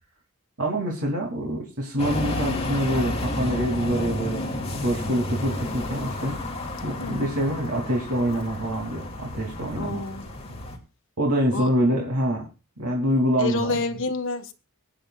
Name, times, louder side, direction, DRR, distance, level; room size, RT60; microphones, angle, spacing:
voice 1, 0.6-4.4 4.7-6.4 6.8-10.0 11.2-12.5 12.8-13.8, equal, 90° right, 3.0 m, -25 dB
sound 1, 2.0-10.8, left 1 dB, 30° left, 2.5 m, -31 dB
voice 2, 9.8-10.3 11.5-11.7 13.4-14.5, left 3 dB, 65° left, 1.4 m, -28 dB
23.0 x 9.0 x 2.4 m
head